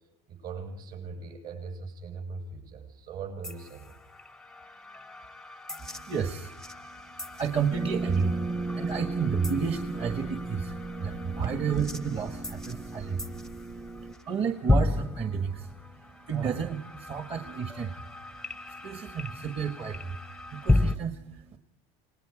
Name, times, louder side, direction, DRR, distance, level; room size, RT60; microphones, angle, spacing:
voice 1, 0.3-4.0 11.3-11.5, right 5 dB, 70° right, 3 dB, 7.4 m, -39 dB
sound 1, 3.4-21.0, left 2 dB, 5° left, 0.7 m, -34 dB
voice 2, 5.8-21.6, right 6 dB, 40° right, 6 dB, 1.5 m, -32 dB
sound 2, 7.7-14.1, right 2 dB, 20° right, 0.9 m, -35 dB
28.5 x 19.0 x 5.0 m, 0.81 s
supercardioid pair, 125°, 15 cm